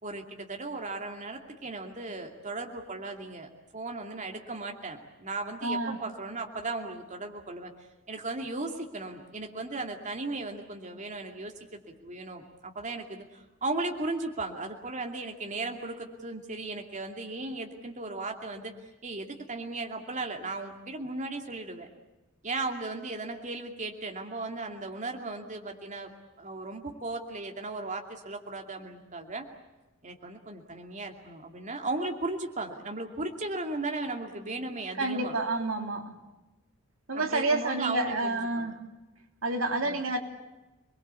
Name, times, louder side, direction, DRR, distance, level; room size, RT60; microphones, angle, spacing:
voice 1, 0.0-7.7 8.1-18.7 19.0-21.9 22.4-26.1 26.4-29.5 30.0-35.4 37.1-38.7 39.8-40.0, right 2 dB, 35° right, 3 dB, 2.6 m, -36 dB
voice 2, 5.6-6.0 35.0-36.2 37.1-38.8 39.4-40.2, right 2 dB, 75° right, 4 dB, 3.3 m, -29 dB
28.5 x 21.5 x 8.3 m, 1.1 s
head